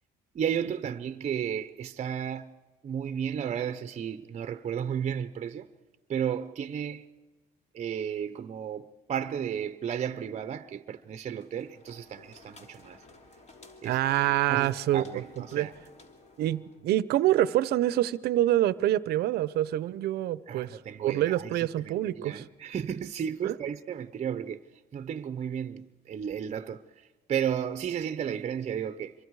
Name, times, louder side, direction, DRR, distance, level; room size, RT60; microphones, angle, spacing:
voice 1, 0.3-2.5 2.8-5.7 6.1-7.1 7.7-13.0 13.8-14.0 14.3-15.7 20.5-24.6 24.9-29.1, right 8 dB, 40° right, 0.8 m, -33 dB
sound 1, 11.4-16.9, left 2 dB, 40° left, 3.0 m, -54 dB
voice 2, 13.8-15.0 15.5-15.7 16.4-22.4 23.4-23.5, right 13 dB, 75° right, 0.8 m, -26 dB
26.0 x 23.0 x 4.8 m
cardioid pair, 110°, 17 cm